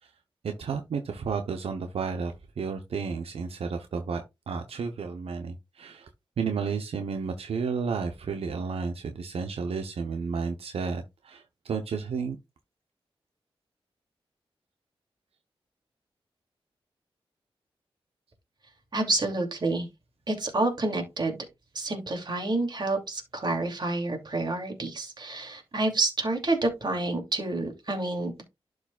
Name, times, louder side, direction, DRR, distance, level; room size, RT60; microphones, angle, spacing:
voice 1, 0.6-6.1 6.4-12.4, right 5 dB, 85° right, 0.8 m, -32 dB
voice 2, 18.9-19.9 20.3-21.4 21.7-28.4, right 2 dB, 50° right, 2.6 m, -28 dB
11.5 x 4.8 x 2.3 m
cardioid pair, 75°, 10 cm